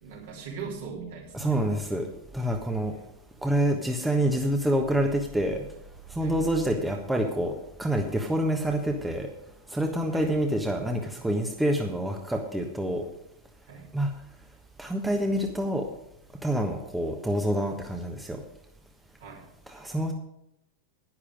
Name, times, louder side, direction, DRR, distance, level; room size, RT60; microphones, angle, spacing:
voice 1, 0.0-1.9 6.2-6.4 10.1-10.3 13.7-13.9 19.2-19.4, right 5 dB, 60° right, -2 dB, 3.6 m, -40 dB
voice 2, 1.3-3.0 3.4-5.6 6.1-9.3 9.7-13.1 13.9-14.1 14.8-15.9 16.4-18.4 19.7-20.1, right 1 dB, 5° right, 3 dB, 1.2 m, -27 dB
11.0 x 10.0 x 5.1 m, 0.80 s
figure-of-eight pair, 90°, 0 cm